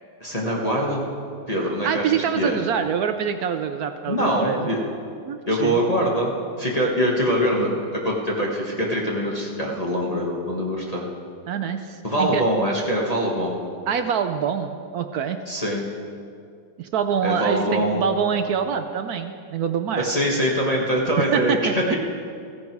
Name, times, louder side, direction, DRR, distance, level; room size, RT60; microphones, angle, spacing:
voice 1, 0.2-1.0 1.5-2.6 4.1-4.8 5.5-6.3 6.6-11.0 12.0-13.6 15.5-15.8 17.2-18.1 20.0-22.0, equal, 20° left, -3 dB, 1.4 m, -23 dB
voice 2, 1.8-4.6 5.3-5.8 11.5-12.4 13.9-15.4 16.8-20.1 21.2-22.0, right 7 dB, 70° right, 8 dB, 0.9 m, -25 dB
16.0 x 14.5 x 4.6 m, 2.4 s
omnidirectional pair, 2.1 m